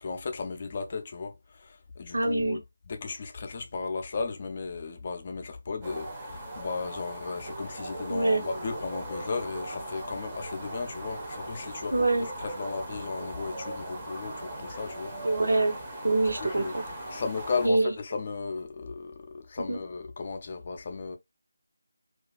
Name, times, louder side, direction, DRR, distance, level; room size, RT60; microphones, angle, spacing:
voice 1, 0.0-1.3 1.6-2.6 2.9-11.9 12.4-15.1 16.4-16.7 17.1-21.2, left 4 dB, 30° left, 0.4 m, -35 dB
voice 2, 2.1-2.6 8.1-8.4 11.9-12.3 15.2-15.7 16.0-16.8 17.6-17.9 19.7-19.8, right 2 dB, 65° right, 0.7 m, -24 dB
sound 1, 5.8-17.7, right 1 dB, 15° right, 0.6 m, -39 dB
2.3 x 2.2 x 2.3 m
figure-of-eight pair, 160°, 0 cm